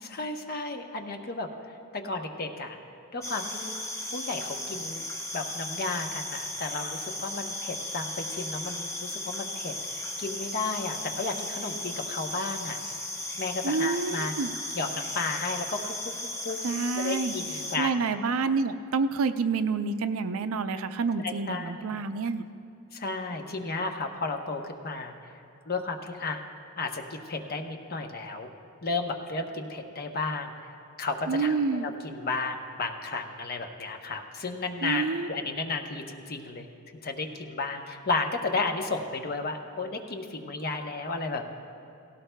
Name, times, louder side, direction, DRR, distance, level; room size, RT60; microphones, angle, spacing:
voice 1, 0.0-1.5 1.9-2.8 3.1-3.7 4.1-5.0 5.3-9.7 10.2-12.8 13.4-14.3 14.7-15.8 16.4-16.6 17.0-17.9 21.2-21.8 22.9-25.1 25.7-26.4 26.8-28.5 28.8-30.5 31.0-35.0 35.3-36.7 37.0-41.6, left 3 dB, 45° left, 4 dB, 0.8 m, -33 dB
sound 1, 3.2-17.8, left 1 dB, 15° left, 0.9 m, -36 dB
voice 2, 13.6-14.5 16.6-17.3 17.8-22.4 31.3-31.9 34.8-35.3, right 4 dB, 70° right, 10 dB, 0.5 m, -28 dB
17.5 x 17.0 x 2.3 m, 2.7 s
head